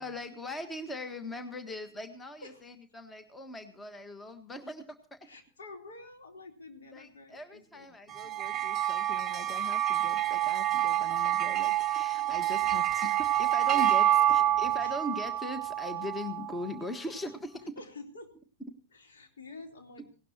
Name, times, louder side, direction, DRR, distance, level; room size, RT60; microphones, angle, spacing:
voice 1, 0.0-5.2 6.9-17.8, left 1 dB, 15° left, 9 dB, 1.5 m, -40 dB
voice 2, 5.2-8.4 13.6-15.0 17.8-18.3 18.9-20.1, left 3 dB, 65° left, 3 dB, 3.6 m, -49 dB
sound 1, 8.1-16.7, right 12 dB, 25° right, 0.8 m, -28 dB
18.5 x 18.0 x 2.9 m, 0.37 s
figure-of-eight pair, 90°, 0 cm